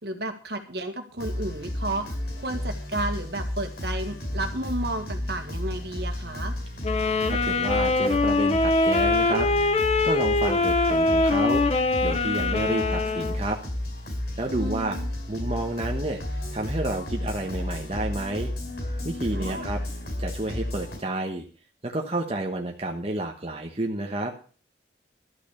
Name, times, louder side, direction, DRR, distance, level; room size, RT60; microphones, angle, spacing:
voice 1, 0.0-6.6 14.5-15.1 19.3-19.8, right 1 dB, 60° right, 6 dB, 1.9 m, -32 dB
sound 1, 1.2-21.0, left 1 dB, 60° left, 5.1 m, -32 dB
sound 2, 6.8-13.4, left 3 dB, 35° left, 0.9 m, -23 dB
voice 2, 7.3-9.5 10.0-13.6 14.4-15.0 15.3-16.2 16.5-18.5 19.0-19.8 20.2-21.4 21.8-24.3, right 1 dB, 30° right, 1 dB, 1.2 m, -30 dB
13.0 x 6.0 x 8.3 m, 0.39 s
head